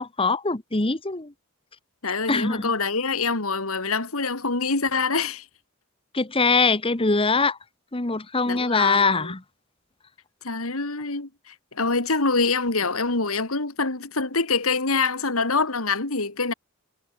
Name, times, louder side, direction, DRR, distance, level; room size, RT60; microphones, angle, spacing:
voice 1, 0.0-1.3 2.3-2.7 6.1-7.6 7.9-9.4, left 3 dB, 25° left, 1.2 m, -22 dB
voice 2, 2.0-5.4 8.5-9.3 10.4-16.5, left 4 dB, 75° left, 2.6 m, -25 dB
head